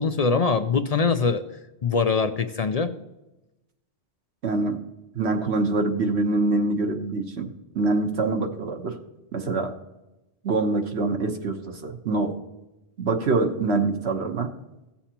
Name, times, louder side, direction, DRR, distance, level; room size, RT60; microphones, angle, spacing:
voice 1, 0.0-1.4 1.8-2.9, left 5 dB, 55° left, 10 dB, 0.4 m, -23 dB
voice 2, 4.4-4.8 5.1-7.5 7.7-9.0 9.3-9.7 10.4-12.3 13.0-14.5, right 3 dB, 70° right, 4 dB, 1.3 m, -25 dB
16.0 x 7.2 x 2.9 m, 0.97 s
omnidirectional pair, 1.2 m